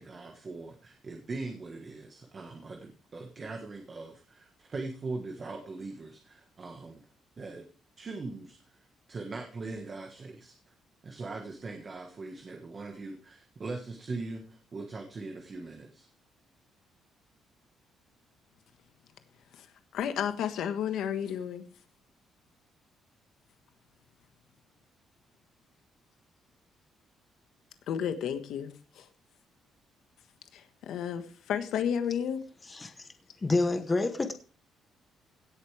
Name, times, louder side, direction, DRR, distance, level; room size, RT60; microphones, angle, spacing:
voice 1, 0.0-7.0 7.4-7.7 8.0-8.8 9.1-10.6 11.0-16.1, right 3 dB, 30° right, 1.5 m, -41 dB
voice 2, 19.5-21.6 27.9-29.1 30.5-32.4, left 8 dB, 75° left, 1.4 m, -32 dB
voice 3, 32.7-33.1 33.4-34.3, left 3 dB, 20° left, 1.0 m, -28 dB
17.0 x 8.3 x 3.4 m
cardioid pair, 160°, 0 cm